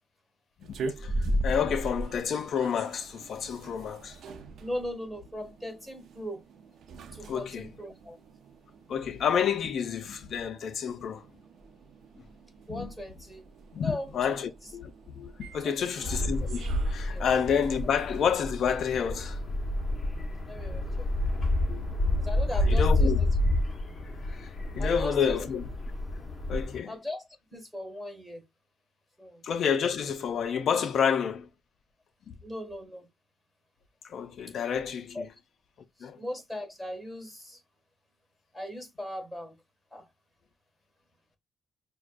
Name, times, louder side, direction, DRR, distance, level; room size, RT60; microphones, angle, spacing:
sound 1, 0.6-18.3, right 1 dB, 65° right, 0.6 m, -40 dB
voice 1, 1.0-4.2 7.3-7.7 8.9-11.3 12.7-12.9 13.7-19.4 21.7-21.8 22.5-23.2 24.3-25.7 26.5-27.0 29.4-31.5 32.3-32.4 34.0-35.3 36.0-36.2, left 7 dB, 65° left, 0.4 m, -29 dB
voice 2, 4.6-6.4 7.1-8.2 12.7-13.4 13.8-14.1 15.6-16.1 17.1-17.3 20.5-21.1 22.2-23.3 24.8-25.4 26.9-27.2 27.5-28.4 29.2-29.4 32.4-33.1 35.1-35.2 36.0-37.6 38.5-39.6 39.9-40.1, left 1 dB, 5° left, 1.7 m, -38 dB
sound 2, 16.0-26.8, left 1 dB, 35° left, 1.2 m, -29 dB
6.0 x 2.2 x 2.5 m
cardioid pair, 90°, 0 cm